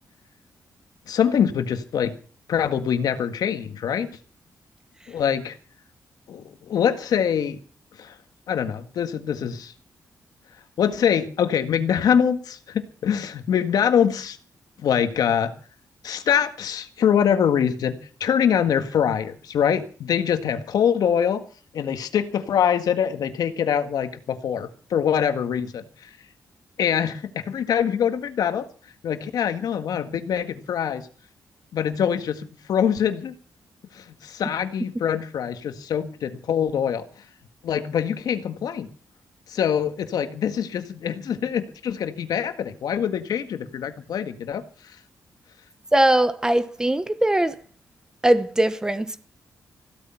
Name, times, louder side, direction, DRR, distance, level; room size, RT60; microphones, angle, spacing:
voice 1, 1.1-2.1 2.5-4.1 5.1-5.6 6.3-7.6 8.0-8.1 8.5-9.7 10.8-14.4 14.8-15.5 16.0-21.4 21.7-26.1 26.8-28.7 29.0-31.1 31.7-33.3 33.9-37.1 37.6-38.9 39.5-44.6, left 8 dB, 80° left, 1.8 m, -24 dB
voice 2, 45.9-47.6 48.2-49.3, right 1 dB, 10° right, 0.9 m, -20 dB
16.0 x 13.0 x 5.8 m
wide cardioid pair, 170°, 6 cm